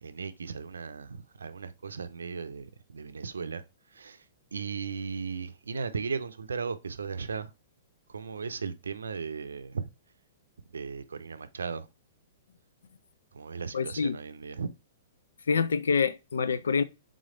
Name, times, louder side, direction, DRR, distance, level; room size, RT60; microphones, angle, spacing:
voice 1, 0.0-3.6 3.9-4.3 4.5-7.5 8.1-9.9 10.7-11.9 13.3-14.7, right 5 dB, 90° right, 0.5 m, -36 dB
voice 2, 13.7-14.2 15.5-16.8, left 5 dB, 85° left, 0.4 m, -26 dB
3.7 x 3.3 x 3.7 m
hypercardioid pair, 125°, 0 cm